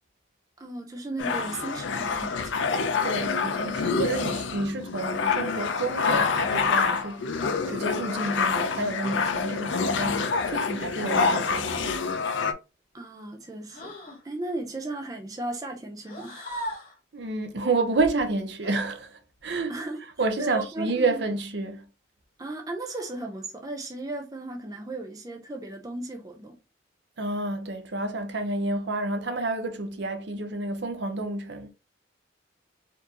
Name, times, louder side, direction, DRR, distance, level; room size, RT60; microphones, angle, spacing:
voice 1, 0.6-2.8 12.9-13.9 14.2-16.5 19.7-21.2 22.4-26.6, right 2 dB, 20° right, 0.4 m, -36 dB
sound 1, 1.2-12.5, left 5 dB, 75° left, 0.5 m, -27 dB
voice 2, 3.0-7.3 7.7-12.0 17.1-19.8 20.2-21.8 27.2-31.7, right 2 dB, 65° right, 0.7 m, -29 dB
sound 2, 8.7-9.1 11.1-11.6 13.7-14.2 16.0-17.0 18.6-18.8 20.9-21.4 22.8-23.3, equal, 45° left, 1.3 m, -40 dB
4.4 x 2.6 x 2.8 m
head